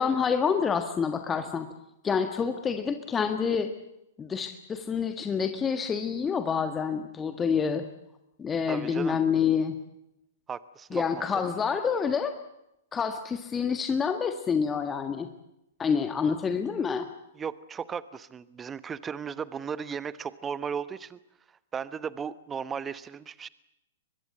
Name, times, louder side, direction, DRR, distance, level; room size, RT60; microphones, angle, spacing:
voice 1, 0.0-1.7 2.0-3.7 4.2-7.9 8.4-9.8 10.9-12.3 12.9-15.3 15.8-17.1, left 6 dB, 20° left, 8 dB, 1.6 m, -27 dB
voice 2, 8.7-9.2 10.5-11.4 17.4-21.2 21.7-23.5, right 7 dB, 20° right, 17 dB, 1.1 m, -36 dB
23.5 x 20.5 x 7.9 m, 0.85 s
hypercardioid pair, 115°, 0 cm